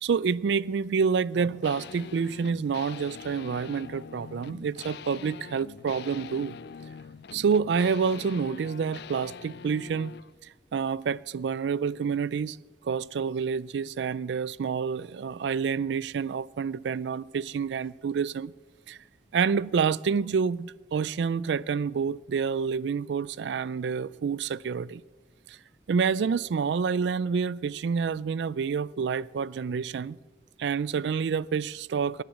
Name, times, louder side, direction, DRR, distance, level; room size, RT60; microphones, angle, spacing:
voice 1, 0.0-6.6 7.3-10.1 10.7-12.6 12.9-18.5 18.9-19.0 19.3-25.0 25.5-25.6 25.9-30.2 30.6-32.2, right 6 dB, 80° right, 0.4 m, -28 dB
sound 1, 1.6-10.3, left 6 dB, 65° left, 0.4 m, -44 dB
14.0 x 9.2 x 8.0 m
head